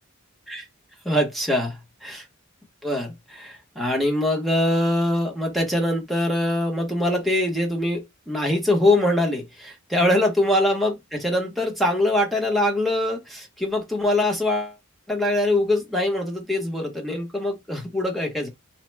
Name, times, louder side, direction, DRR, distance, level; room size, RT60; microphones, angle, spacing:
voice 1, 1.0-2.2 2.8-14.8 15.1-18.5, left 1 dB, ahead, 0.8 m, -23 dB
3.0 x 2.2 x 3.2 m
head